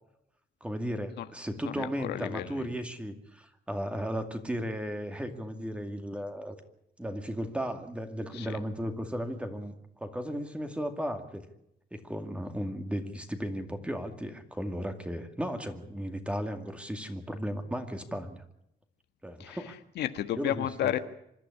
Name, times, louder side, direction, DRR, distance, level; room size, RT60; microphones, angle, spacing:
voice 1, 0.6-6.6 7.0-11.4 11.9-18.4 19.2-19.7 20.4-20.9, equal, 5° right, 6 dB, 2.3 m, -35 dB
voice 2, 1.8-2.7 8.3-8.6 19.4-19.6 20.0-21.0, left 11 dB, 75° left, 9 dB, 1.5 m, -32 dB
26.0 x 12.0 x 9.8 m, 0.78 s
cardioid pair, 130°, 17 cm